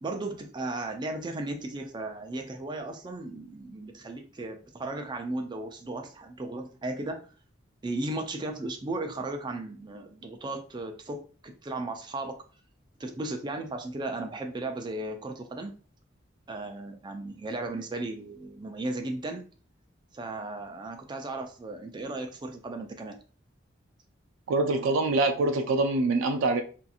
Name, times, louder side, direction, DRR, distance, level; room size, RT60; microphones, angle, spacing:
voice 1, 0.0-7.2 7.8-12.4 13.0-15.7 16.5-19.4 20.1-23.2, right 2 dB, 25° right, 4 dB, 0.4 m, -35 dB
voice 2, 24.5-26.6, right 2 dB, 90° right, 5 dB, 0.4 m, -25 dB
2.8 x 2.5 x 2.3 m, 0.38 s
head